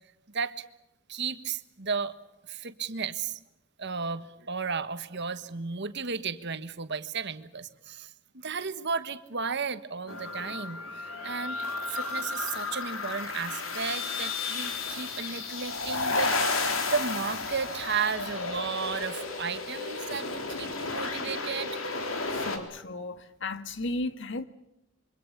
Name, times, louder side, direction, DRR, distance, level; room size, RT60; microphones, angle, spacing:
voice 1, 0.3-0.6 1.1-2.1 2.5-3.4 3.8-11.6 11.9-21.8, right 5 dB, 55° right, 1.4 m, -34 dB
sound 1, 10.1-22.6, left 3 dB, 80° left, 3.8 m, -32 dB
voice 2, 22.3-24.4, left 2 dB, 65° left, 1.7 m, -35 dB
26.5 x 24.5 x 6.8 m
head